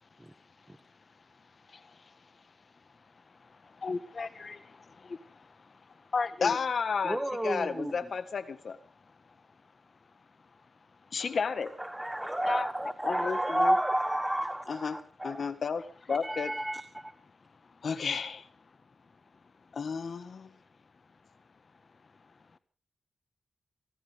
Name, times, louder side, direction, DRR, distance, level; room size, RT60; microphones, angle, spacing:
voice 1, 0.0-6.6 8.9-11.1 12.1-12.7 17.2-17.9 19.5-19.8 20.4-20.6 21.3-21.4 21.9-22.6, left 4 dB, 45° left, 1.5 m, -41 dB
voice 2, 6.4-8.8 11.1-11.7 13.0-13.7 14.7-16.6 17.8-18.4 19.7-20.5, left 5 dB, 60° left, 1.7 m, -32 dB
voice 3, 7.0-7.9 11.8-15.5 16.1-17.1, right 1 dB, 10° right, 1.3 m, -31 dB
26.5 x 14.5 x 3.6 m
wide cardioid pair, 95°, 0 cm